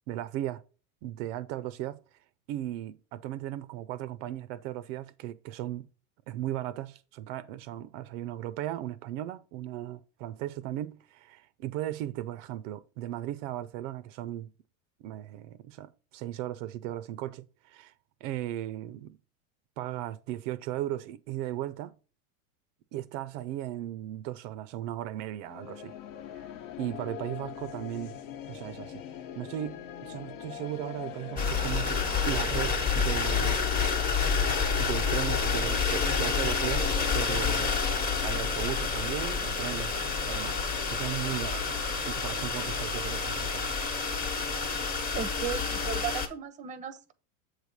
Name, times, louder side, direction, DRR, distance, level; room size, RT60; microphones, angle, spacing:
voice 1, 0.1-0.6 1.0-2.0 2.5-5.9 6.3-14.5 15.0-17.9 18.2-19.2 19.8-22.0 22.9-26.0 26.8-28.2 28.5-29.0 29.4-33.6 34.8-37.8 38.2-39.9 40.3-43.8, right 13 dB, 60° right, 0.5 m, -36 dB
sound 1, 25.4-43.6, left 9 dB, 65° left, 0.9 m, -43 dB
sound 2, 31.4-46.3, left 5 dB, 20° left, 1.0 m, -29 dB
voice 2, 45.1-47.1, right 8 dB, 20° right, 0.6 m, -36 dB
7.7 x 3.3 x 5.1 m
supercardioid pair, 120°, 43 cm